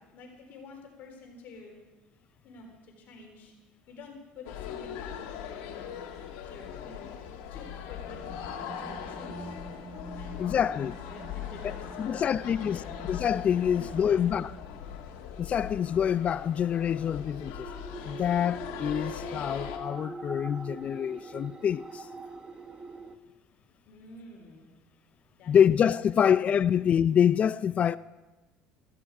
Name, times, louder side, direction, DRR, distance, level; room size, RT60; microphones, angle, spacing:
voice 1, 0.1-1.8 2.4-3.6 3.9-6.0 6.5-7.1 7.5-9.6 10.2-10.5 11.0-13.0 13.7-14.2 23.9-24.7 25.4-26.3, left 3 dB, 55° left, 3.7 m, -49 dB
School break, 4.4-19.8, left 9 dB, 75° left, 2.0 m, -40 dB
sound 1, 7.4-23.2, right 3 dB, 25° right, 0.9 m, -45 dB
voice 2, 10.4-11.0 12.0-12.8 13.1-14.5 15.4-17.7 18.1-22.1 25.5-28.0, left 8 dB, 35° left, 0.4 m, -26 dB
15.5 x 15.0 x 4.8 m
supercardioid pair, 110°, 4 cm